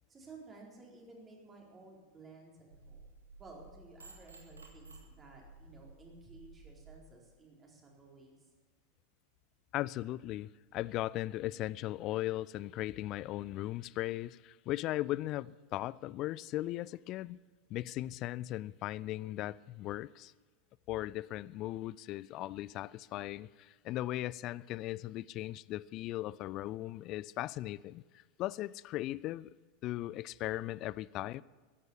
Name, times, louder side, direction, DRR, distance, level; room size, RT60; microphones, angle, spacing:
voice 1, 0.1-3.0 3.4-8.5, right 3 dB, 20° right, 4.2 m, -55 dB
sound 1, 2.7-7.0, right 3 dB, 75° right, 1.8 m, -55 dB
voice 2, 9.7-17.4 17.7-20.3 20.9-28.0 28.4-29.5 29.8-31.4, left 15 dB, 40° left, 0.4 m, -38 dB
14.5 x 11.0 x 7.0 m
figure-of-eight pair, 85°, 0 cm